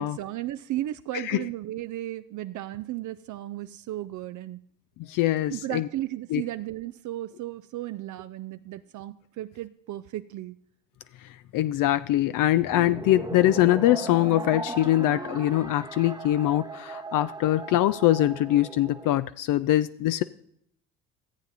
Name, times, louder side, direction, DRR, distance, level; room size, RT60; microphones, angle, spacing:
voice 1, 0.0-4.6 5.5-10.6, right 14 dB, 50° right, 12 dB, 0.5 m, -35 dB
voice 2, 5.0-5.9 6.3-6.4 11.5-20.2, left 14 dB, 55° left, 13 dB, 0.5 m, -23 dB
sound 1, 12.6-19.1, right 3 dB, 10° right, 0.9 m, -37 dB
14.0 x 7.9 x 4.1 m, 0.68 s
hypercardioid pair, 65°, 39 cm